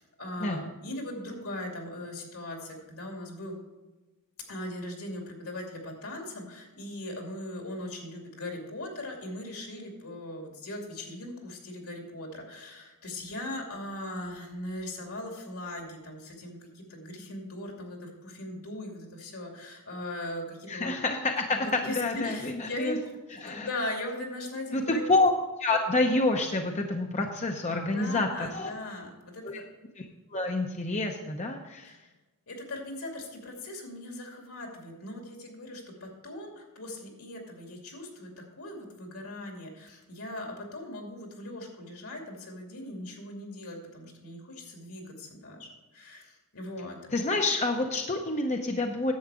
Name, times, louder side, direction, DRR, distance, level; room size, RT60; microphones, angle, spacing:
voice 1, 0.0-3.6 4.5-21.0 21.5-25.0 27.7-29.6 31.8-31.9 32.5-47.0, left 1 dB, 75° left, 1 dB, 2.6 m, -39 dB
voice 2, 20.7-23.0 23.4-23.7 24.7-25.3 25.6-28.7 29.4-29.6 30.0-30.1 30.3-32.0 47.1-49.1, left 2 dB, 30° left, 3 dB, 0.7 m, -28 dB
10.5 x 7.8 x 4.9 m, 1.2 s
head